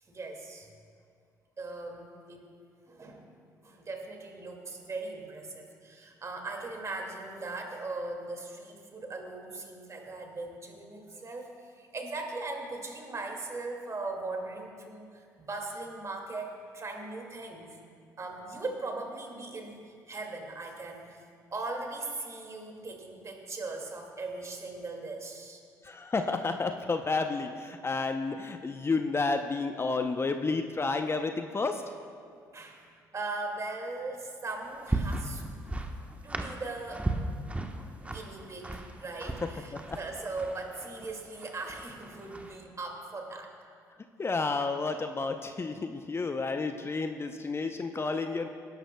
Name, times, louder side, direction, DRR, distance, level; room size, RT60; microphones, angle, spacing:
voice 1, 0.1-0.7 1.6-2.5 2.9-17.8 18.2-21.3 21.5-25.6 32.5-35.4 36.2-37.1 38.0-43.5, right 3 dB, 35° right, 2 dB, 2.2 m, -39 dB
voice 2, 25.8-31.8 39.4-39.5 39.9-40.0 44.2-48.5, left 3 dB, 30° left, 6 dB, 0.7 m, -31 dB
sound 1, 34.6-42.6, right 2 dB, 15° right, 1.1 m, -36 dB
17.5 x 11.5 x 2.3 m, 2.2 s
hypercardioid pair, 50°, 9 cm